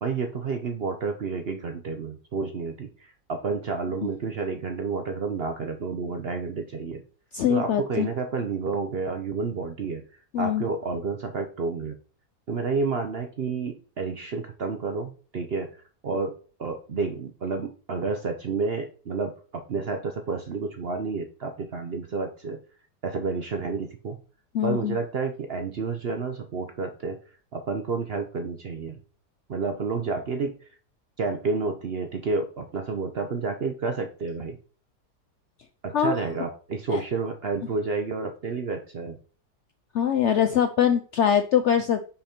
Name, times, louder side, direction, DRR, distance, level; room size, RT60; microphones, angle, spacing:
voice 1, 0.0-7.0 7.5-10.0 10.4-11.9 12.5-15.7 16.0-22.6 23.0-24.2 24.6-27.2 27.5-29.0 29.5-30.6 31.2-34.6 35.8-39.2, right 4 dB, 55° right, 5 dB, 0.7 m, -30 dB
voice 2, 7.3-8.1 10.3-10.6 24.5-25.0 35.9-36.1 36.9-37.0 39.9-42.1, left 9 dB, 70° left, 8 dB, 0.7 m, -23 dB
5.7 x 5.1 x 4.3 m, 0.39 s
omnidirectional pair, 1.7 m